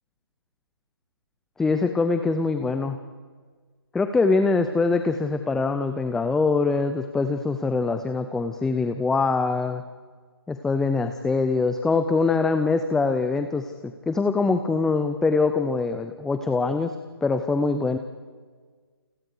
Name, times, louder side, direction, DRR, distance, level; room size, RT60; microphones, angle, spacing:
voice 1, 1.6-3.0 3.9-9.8 10.5-16.9 17.2-18.0, left 4 dB, 5° left, 8 dB, 0.6 m, -23 dB
29.5 x 28.5 x 5.0 m, 1.5 s
figure-of-eight pair, 145°, 13 cm